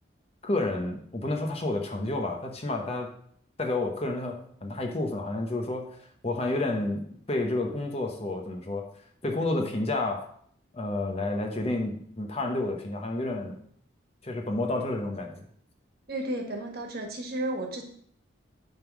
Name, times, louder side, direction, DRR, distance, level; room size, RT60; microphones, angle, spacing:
voice 1, 0.4-3.1 3.6-6.0 6.2-8.9 9.2-10.3 10.7-13.6 14.2-15.5, left 2 dB, 30° left, 3 dB, 0.9 m, -30 dB
voice 2, 16.1-17.8, right 1 dB, 50° right, 2 dB, 1.5 m, -33 dB
9.3 x 3.7 x 6.1 m, 0.64 s
head